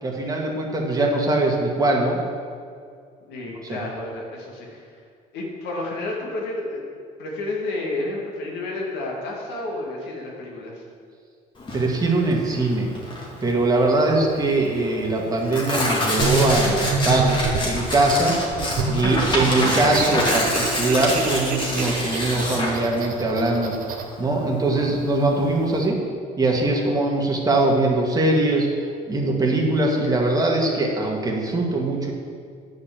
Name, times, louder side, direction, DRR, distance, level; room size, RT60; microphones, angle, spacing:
voice 1, 0.0-2.2 3.6-3.8 11.7-12.9 13.4-18.4 18.9-23.7 24.2-26.0 26.4-28.7 29.1-32.1, right 2 dB, 20° right, -1 dB, 1.9 m, -21 dB
voice 2, 3.3-5.0 5.3-6.8 7.2-10.8, left 2 dB, 90° left, -2 dB, 2.2 m, -31 dB
Tearing, 11.6-25.8, left 1 dB, 30° left, 2.2 m, -27 dB
sound 1, 16.2-17.8 18.5-24.0, right 4 dB, 55° right, 1.1 m, -27 dB
9.4 x 5.2 x 7.4 m, 2.2 s
cardioid pair, 110°, 17 cm